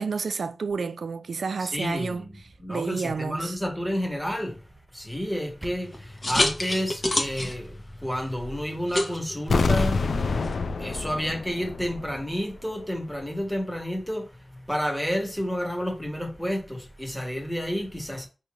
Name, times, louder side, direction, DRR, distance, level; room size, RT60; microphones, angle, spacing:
voice 1, 0.0-2.3 2.7-3.6, right 5 dB, 80° right, 0.3 m, -30 dB
voice 2, 1.6-10.3 10.8-18.3, equal, 5° left, 1.2 m, -30 dB
sound 1, 5.2-6.2, right 1 dB, 25° right, 0.6 m, -45 dB
sound 2, 5.8-10.5, left 1 dB, 40° left, 1.0 m, -30 dB
sound 3, 9.5-12.4 12.6-12.7, left 4 dB, 85° left, 0.3 m, -26 dB
5.1 x 2.8 x 3.0 m
cardioid pair, 55°, 0 cm